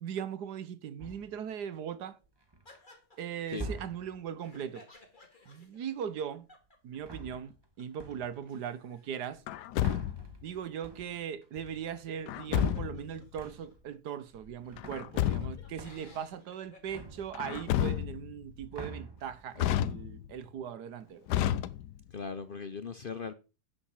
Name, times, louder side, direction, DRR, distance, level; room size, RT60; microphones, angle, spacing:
voice 1, 0.0-2.2 3.2-4.8 5.5-6.5 6.8-9.4 10.4-21.3, right 8 dB, 80° right, 1.5 m, -39 dB
sound 1, 1.0-1.5 2.2-2.8 3.5-4.3 6.9-7.7 8.0-8.5 9.3-13.9 14.3-15.5 15.8-16.3 16.5-18.1 18.4-19.6, right 2 dB, 15° right, 1.4 m, -44 dB
sound 2, 2.6-7.5 7.8-7.9 8.1-13.7 14.3-14.4 14.6-17.2, left 2 dB, 30° left, 2.5 m, -58 dB
Truck, 9.5-10.4 12.3-13.1 14.8-15.7 17.3-18.4 19.6-20.4 21.3-22.2, left 12 dB, 90° left, 1.3 m, -31 dB
voice 2, 22.1-23.3, left 5 dB, 45° left, 0.7 m, -39 dB
10.0 x 5.2 x 7.3 m
omnidirectional pair, 1.7 m